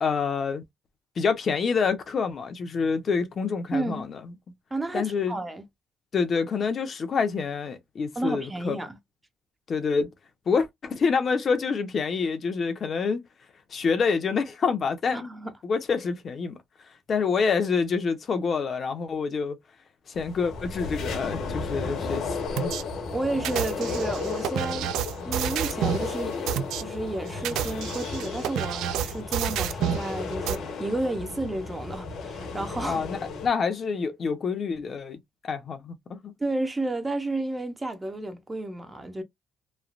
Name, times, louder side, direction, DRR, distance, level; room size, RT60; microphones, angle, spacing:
voice 1, 0.0-0.6 1.2-4.3 4.9-5.4 6.1-8.8 9.7-10.1 10.5-13.2 13.7-15.3 15.6-16.6 17.1-19.6 20.1-22.7 32.8-35.2 35.4-36.3, left 5 dB, 45° left, 0.8 m, -27 dB
voice 2, 3.7-4.1 4.7-5.7 8.2-9.0 15.1-15.5 23.1-24.9 25.3-33.0 36.4-39.2, right 2 dB, 15° right, 0.7 m, -31 dB
sound 1, 20.2-33.5, left 4 dB, 70° left, 1.3 m, -34 dB
sound 2, 22.6-22.8 23.4-26.1 26.5-26.8 27.3-30.1 30.5-30.6, right 10 dB, 90° right, 0.4 m, -29 dB
3.2 x 2.3 x 2.4 m
cardioid pair, 115°, 0 cm